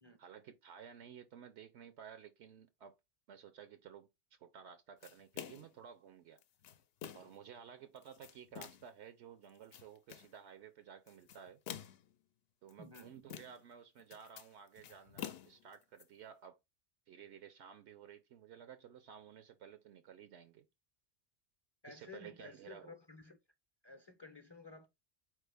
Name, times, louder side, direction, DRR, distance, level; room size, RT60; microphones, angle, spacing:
voice 1, 0.2-3.0 3.3-4.1 4.4-6.4 7.1-11.6 12.6-16.6 17.1-20.7 21.9-23.0, right 8 dB, 75° right, 0.9 m, -54 dB
sound 1, 5.0-5.8 6.4-7.4 8.0-8.9 9.5-10.3 11.1-12.1 12.7-13.7 14.0-16.0, left 10 dB, 65° left, 0.7 m, -49 dB
voice 2, 12.8-13.1 21.8-23.4 23.8-24.9, left 4 dB, 30° left, 0.6 m, -54 dB
4.4 x 3.2 x 3.4 m
omnidirectional pair, 1.2 m